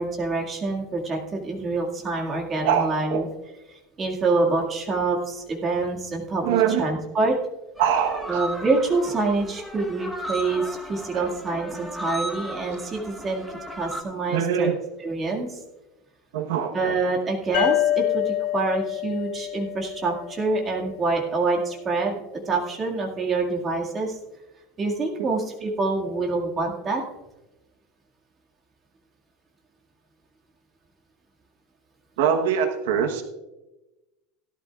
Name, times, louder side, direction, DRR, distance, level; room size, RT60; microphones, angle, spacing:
voice 1, 0.0-3.3 4.0-7.4 8.3-13.5 13.8-15.6 16.7-24.2 24.8-27.0, right 3 dB, 25° right, 0 dB, 2.0 m, -26 dB
voice 2, 2.6-3.3 6.4-6.9 7.8-8.4 11.1-11.3 14.3-14.8 16.3-16.9 32.2-33.2, right 8 dB, 80° right, 5 dB, 1.1 m, -23 dB
sound 1, 7.8-14.0, equal, ahead, 1.1 m, -36 dB
sound 2, 17.5-21.0, left 13 dB, 80° left, 2.9 m, -27 dB
17.0 x 12.0 x 2.4 m, 1.0 s
supercardioid pair, 150°, 0 cm